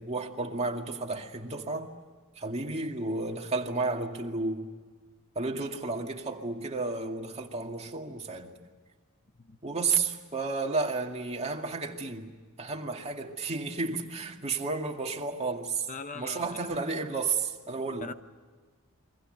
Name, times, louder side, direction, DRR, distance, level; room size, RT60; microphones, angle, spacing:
voice 1, 0.0-1.9 2.4-4.7 5.4-8.6 9.6-12.3 12.6-15.9 16.1-18.1, right 3 dB, 30° right, 2.3 m, -32 dB
voice 2, 15.9-16.8 18.0-18.1, left 4 dB, 35° left, 0.7 m, -41 dB
29.5 x 23.5 x 6.6 m
head